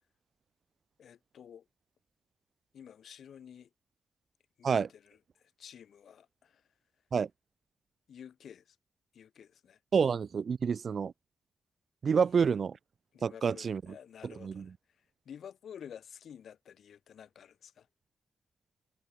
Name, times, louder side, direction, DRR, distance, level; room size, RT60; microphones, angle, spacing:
voice 1, 1.0-1.6 2.7-3.7 4.6-6.6 8.1-8.8 9.1-9.8 13.1-14.7 15.2-17.9, left 8 dB, 70° left, 1.7 m, -51 dB
voice 2, 9.9-11.1 12.0-12.8 13.2-13.8 14.2-14.6, right 6 dB, 60° right, 0.4 m, -28 dB
hypercardioid pair, 40°, 0 cm